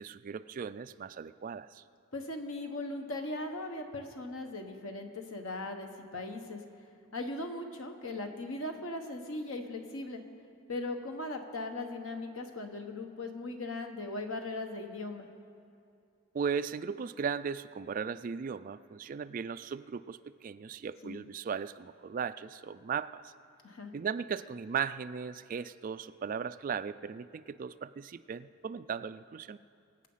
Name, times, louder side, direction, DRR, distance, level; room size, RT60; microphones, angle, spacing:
voice 1, 0.0-1.8 16.3-23.3 23.9-29.6, right 6 dB, 40° right, 14 dB, 0.3 m, -37 dB
voice 2, 2.1-6.6 7.1-10.2 10.7-15.3 21.0-21.2 23.6-23.9, left 2 dB, 85° left, 5 dB, 1.4 m, -39 dB
24.0 x 8.3 x 5.7 m, 2.5 s
head